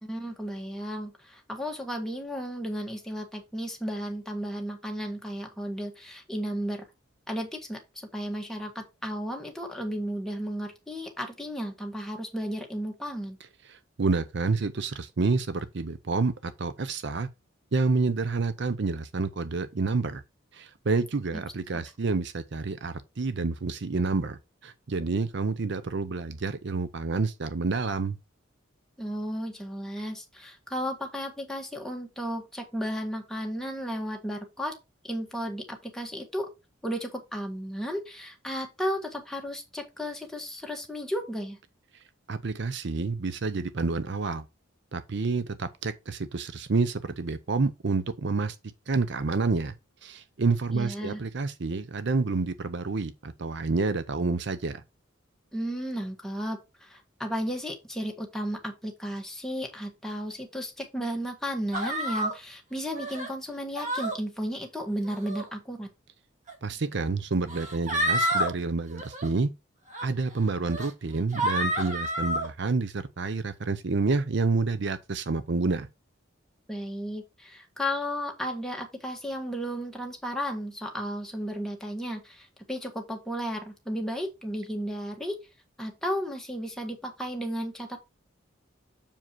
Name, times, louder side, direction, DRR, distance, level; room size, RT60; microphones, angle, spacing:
voice 1, 0.0-6.8 7.3-13.4 21.3-21.4 29.0-34.8 35.0-36.5 36.8-41.6 50.7-51.2 55.5-65.9 76.7-85.4 85.8-88.0, equal, ahead, 1.7 m, -34 dB
voice 2, 13.7-17.3 17.7-20.2 20.5-28.2 42.3-44.4 44.9-48.6 48.9-49.7 50.0-54.8 66.6-69.5 70.0-75.9, right 3 dB, 60° right, 0.6 m, -28 dB
sound 1, 61.7-62.3 62.9-63.3 63.8-64.2 65.1-65.4 66.5-66.6 67.5-68.5 68.9-69.3 69.9-70.1 70.7-70.9 71.3-72.5, right 1 dB, 35° right, 2.9 m, -29 dB
7.3 x 4.9 x 4.5 m
head